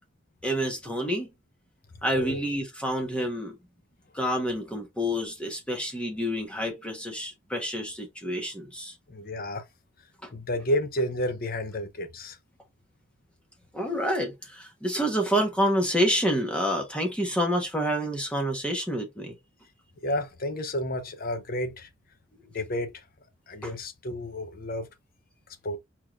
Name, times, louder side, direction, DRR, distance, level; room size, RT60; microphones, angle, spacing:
voice 1, 0.4-1.3 2.0-3.6 4.1-8.9 10.2-10.3 13.7-19.3 23.6-23.7, equal, 5° left, 1.2 m, -28 dB
voice 2, 9.1-9.6 10.3-12.4 20.0-21.9 22.5-22.9 23.5-24.9 25.6-25.8, left 1 dB, 45° left, 0.8 m, -31 dB
4.5 x 3.8 x 2.5 m
head